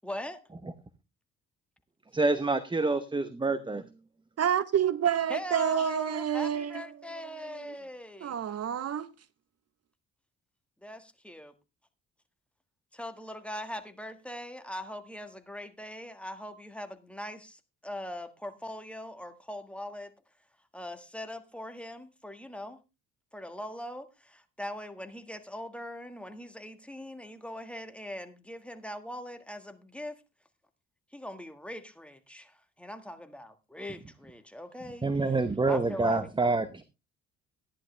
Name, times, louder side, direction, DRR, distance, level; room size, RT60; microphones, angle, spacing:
voice 1, 0.0-0.4 5.3-8.4 10.8-11.5 12.9-20.1 20.7-22.8 23.3-30.2 31.1-35.1 35.7-36.3, left 1 dB, 5° left, 1.7 m, -41 dB
voice 2, 2.1-3.9 35.0-36.8, right 3 dB, 15° right, 0.9 m, -27 dB
voice 3, 4.4-6.8 7.4-7.7 8.2-9.1, right 9 dB, 55° right, 0.9 m, -28 dB
14.5 x 10.5 x 3.4 m
cardioid pair, 90°, 30 cm